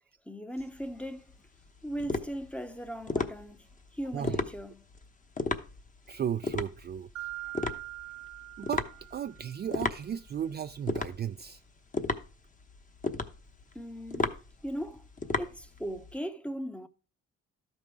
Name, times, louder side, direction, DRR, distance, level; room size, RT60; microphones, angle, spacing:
voice 1, 0.3-1.5 1.8-4.8 7.4-7.5 13.7-15.0 15.4-16.9, equal, 5° left, 0.8 m, -39 dB
sound 1, 0.6-16.2, left 3 dB, 25° left, 1.0 m, -35 dB
voice 2, 6.1-7.1 8.6-8.9 9.1-11.6, right 9 dB, 35° right, 0.4 m, -35 dB
Mallet percussion, 7.2-9.7, right 16 dB, 70° right, 1.2 m, -43 dB
12.5 x 5.4 x 4.7 m
cardioid pair, 90°, 30 cm